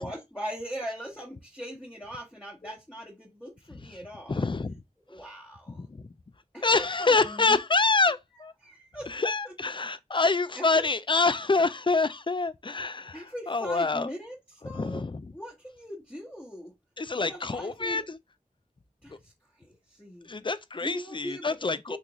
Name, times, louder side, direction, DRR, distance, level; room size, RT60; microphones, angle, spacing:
voice 1, 0.0-4.5 5.1-5.8 6.5-7.6 8.6-9.1 9.4-9.5 10.6-10.9 13.1-14.4 14.6-15.0 15.3-16.7 17.2-18.0 19.0-19.3 19.6-20.3 20.8-21.5 21.9-22.0, equal, 10° left, 1.1 m, -40 dB
voice 2, 4.3-4.8 5.7-6.1 6.6-8.5 9.1-14.1 14.6-15.3 17.0-18.2 19.1-19.2 20.2-22.0, left 3 dB, 35° left, 0.3 m, -27 dB
3.6 x 2.5 x 2.9 m
wide cardioid pair, 45°, 14 cm